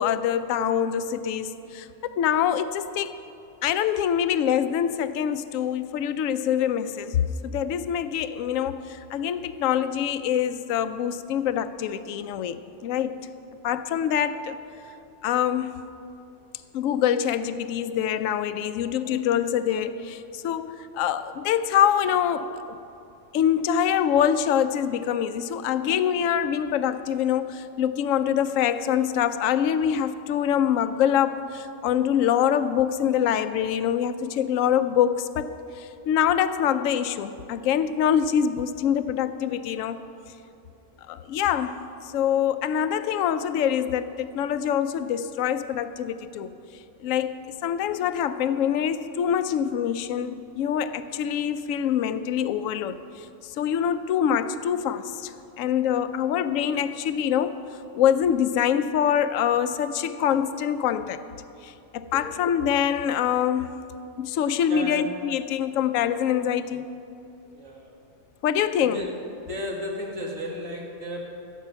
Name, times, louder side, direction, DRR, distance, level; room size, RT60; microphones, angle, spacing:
voice 1, 0.0-3.1 3.6-7.2 7.4-13.2 13.6-14.6 15.2-15.8 16.7-22.8 23.3-35.5 35.7-40.0 41.1-46.5 47.0-57.6 57.9-61.2 61.6-63.8 64.2-66.9 68.4-69.0, left 9 dB, 70° left, 12 dB, 0.9 m, -25 dB
voice 2, 64.7-65.1 67.5-67.9 68.8-69.1 69.5-71.2, equal, 65° right, -2 dB, 2.2 m, -34 dB
15.5 x 7.4 x 5.7 m, 2.7 s
omnidirectional pair, 1.5 m